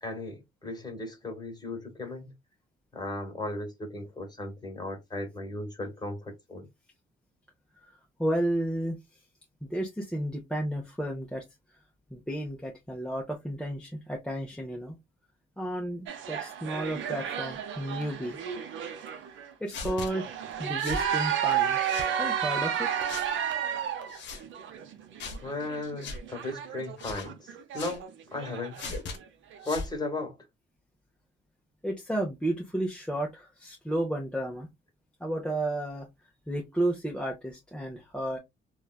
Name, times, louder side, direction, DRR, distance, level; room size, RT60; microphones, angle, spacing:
voice 1, 0.0-2.3 2.9-6.7 25.4-28.9 29.6-30.4, left 2 dB, 20° left, 1.3 m, -36 dB
voice 2, 8.2-9.0 9.6-11.4 12.1-15.0 15.6-18.4 19.6-20.3 20.6-22.9 31.8-34.7 35.2-36.1 36.5-38.4, right 1 dB, 5° left, 0.6 m, -32 dB
sound 1, 16.1-19.5 19.8-29.2 29.5-29.7, right 9 dB, 75° right, 0.6 m, -32 dB
sound 2, 19.7-20.1 20.8-21.1 21.8-22.1 23.1-23.3 24.1-24.4 25.2-25.4 26.0-26.2 27.0-27.3 27.7-28.0 28.8-29.2 29.6-29.9, left 4 dB, 65° left, 0.8 m, -38 dB
3.2 x 2.3 x 2.3 m
cardioid pair, 90°, 20 cm